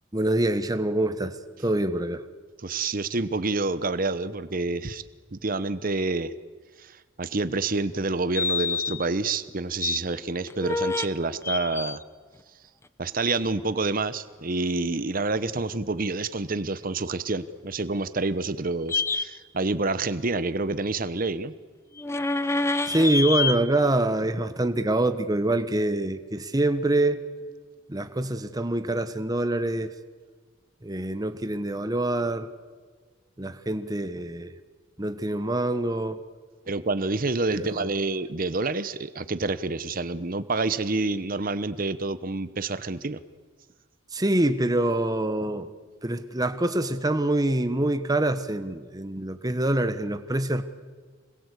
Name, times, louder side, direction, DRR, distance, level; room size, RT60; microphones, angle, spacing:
voice 1, 0.1-1.3 1.6-2.2 22.9-27.2 27.9-29.9 30.8-32.5 33.4-34.5 35.0-36.2 37.5-37.9 44.1-45.7 46.0-50.6, right 1 dB, 20° right, 10 dB, 1.2 m, -25 dB
voice 2, 2.6-5.0 5.3-6.3 6.8-12.0 13.0-21.5 36.7-43.2, right 3 dB, 45° right, 13 dB, 1.0 m, -28 dB
sound 1, 8.3-9.0 9.5-10.0 10.5-11.1 11.4-12.0 18.9-19.2 22.0-23.6, left 3 dB, 15° left, 0.8 m, -27 dB
26.0 x 21.5 x 8.3 m, 1.5 s
head